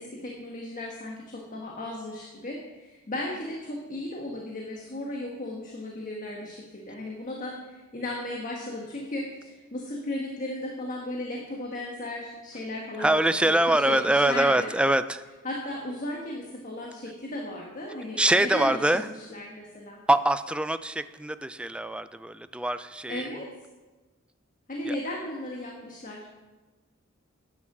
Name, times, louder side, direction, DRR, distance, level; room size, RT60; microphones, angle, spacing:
voice 1, 0.0-13.1 13.4-14.7 15.4-20.0 23.1-23.5 24.7-26.4, left 1 dB, 40° left, -1 dB, 1.4 m, -35 dB
voice 2, 13.0-15.2 18.2-19.1 20.1-23.3 24.9-25.0, right 1 dB, 5° right, 12 dB, 0.3 m, -24 dB
9.8 x 9.6 x 6.1 m, 1.2 s
head